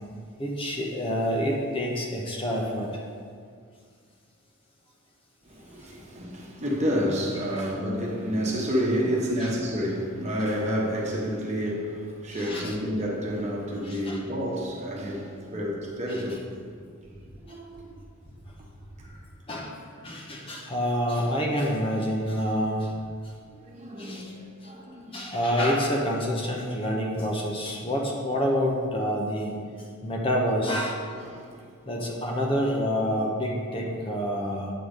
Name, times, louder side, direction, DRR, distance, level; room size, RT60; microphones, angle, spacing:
voice 1, 0.4-2.9 7.5-7.7 9.4-9.5 12.3-12.7 13.8-14.2 16.1-16.2 19.5-19.7 20.0-22.9 24.0-24.3 25.1-29.5 30.0-31.0 31.9-34.7, equal, 25° left, -1 dB, 0.8 m, -27 dB
voice 2, 5.4-16.7 17.4-18.0 19.0-19.1 23.6-25.3 31.1-31.7, equal, 35° right, -2 dB, 1.2 m, -30 dB
8.7 x 3.9 x 6.5 m, 2.1 s
head